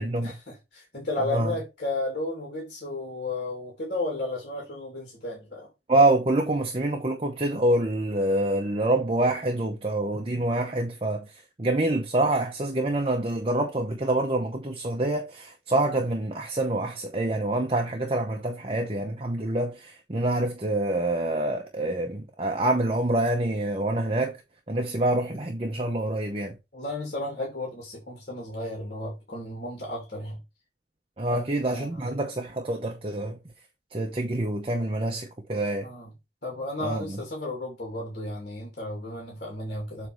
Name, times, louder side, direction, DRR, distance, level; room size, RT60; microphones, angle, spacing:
voice 1, 0.0-5.7 26.7-30.4 31.2-31.4 31.7-32.1 35.8-36.1 36.4-40.1, left 2 dB, 50° left, 2.8 m, -33 dB
voice 2, 5.9-11.3 11.6-24.4 24.7-26.6 31.2-33.4 33.9-35.9 36.8-37.2, right 1 dB, 30° right, 0.8 m, -26 dB
7.7 x 3.3 x 4.7 m
head